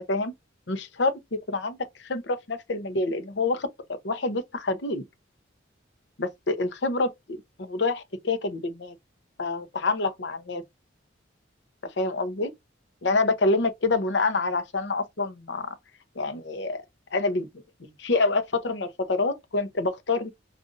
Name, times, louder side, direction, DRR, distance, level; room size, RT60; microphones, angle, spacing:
voice 1, 0.7-1.1 1.5-5.0 6.2-8.9 9.4-10.6 11.8-12.5 13.0-15.7 16.2-16.8 17.1-17.5 17.8-20.3, left 3 dB, 65° left, 0.7 m, -27 dB
5.1 x 2.5 x 2.5 m
head